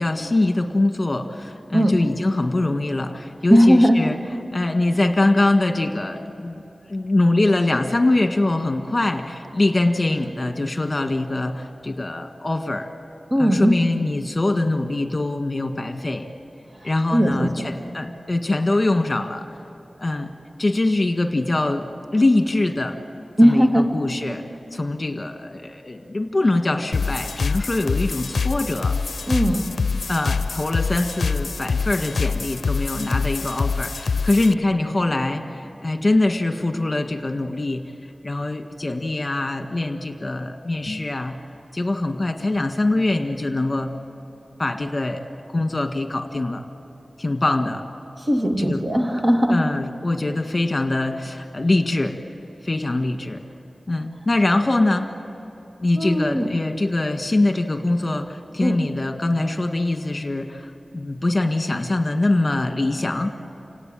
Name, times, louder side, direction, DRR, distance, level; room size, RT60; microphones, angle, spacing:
voice 1, 0.0-4.2 4.5-6.6 6.9-12.9 13.4-16.2 16.8-19.6 20.0-20.3 20.6-21.9 22.1-22.9 23.4-24.4 24.7-29.0 30.1-37.8 38.2-41.4 41.7-43.9 44.6-45.2 45.5-46.6 47.2-47.8 48.6-48.8 49.5-52.1 52.6-53.4 53.9-55.1 55.8-63.3, left 2 dB, 40° left, 5 dB, 1.7 m, -23 dB
voice 2, 3.5-4.0 13.3-13.8 16.8-17.5 23.4-23.9 29.3-29.6 48.2-49.6 56.0-56.5 58.6-58.8, equal, 40° right, 3 dB, 2.6 m, -18 dB
sound 1, 26.9-34.5, left 4 dB, 85° left, 0.5 m, -25 dB
29.5 x 17.5 x 9.2 m, 2.9 s
wide cardioid pair, 65°, 0 cm